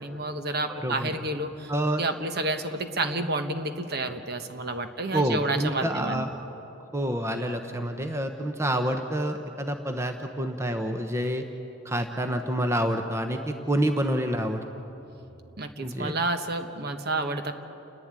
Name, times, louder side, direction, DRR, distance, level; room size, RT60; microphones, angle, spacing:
voice 1, 0.0-1.7 2.0-6.2 15.6-17.5, right 2 dB, 50° right, 7 dB, 1.2 m, -30 dB
voice 2, 0.7-1.1 1.7-2.0 5.1-6.3 6.9-11.4 11.8-14.6 15.8-16.1, right 1 dB, 15° right, 5 dB, 0.9 m, -28 dB
29.5 x 11.0 x 9.7 m, 2.9 s
head